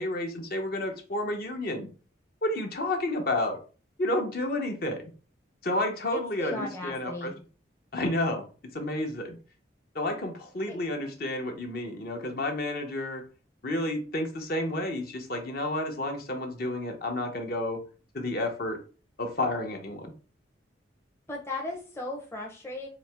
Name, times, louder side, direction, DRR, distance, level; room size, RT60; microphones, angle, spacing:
voice 1, 0.0-1.9 2.4-3.6 4.0-5.0 5.6-7.3 7.9-8.4 8.7-9.4 9.9-13.2 13.6-17.8 18.1-18.8 19.2-20.1, left 1 dB, 50° left, 3 dB, 0.8 m, -30 dB
voice 2, 6.1-7.4 10.7-10.8 21.3-22.9, left 2 dB, 15° left, -1 dB, 0.6 m, -36 dB
4.1 x 2.8 x 3.3 m, 0.37 s
head